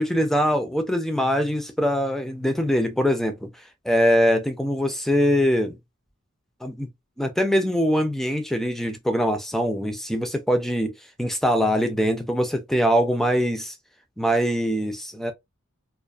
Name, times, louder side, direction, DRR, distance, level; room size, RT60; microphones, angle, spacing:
voice 1, 0.0-3.5 3.8-5.8 6.6-6.9 7.2-10.9 11.2-13.7 14.2-15.3, equal, ahead, 0.4 m, -23 dB
2.4 x 2.3 x 2.3 m
head